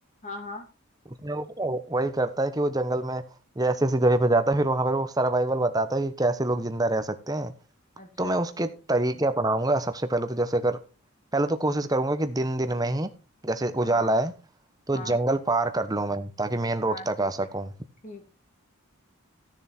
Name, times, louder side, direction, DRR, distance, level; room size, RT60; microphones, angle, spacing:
voice 1, 0.2-0.7 8.0-8.4 13.8-14.2 14.9-15.2 16.9-17.3 18.0-18.2, left 2 dB, 35° left, 2.6 m, -40 dB
voice 2, 1.2-3.2 3.6-7.5 8.2-10.8 11.3-13.1 13.4-14.3 14.9-17.7, right 2 dB, 15° right, 1.0 m, -25 dB
14.5 x 7.0 x 4.4 m
head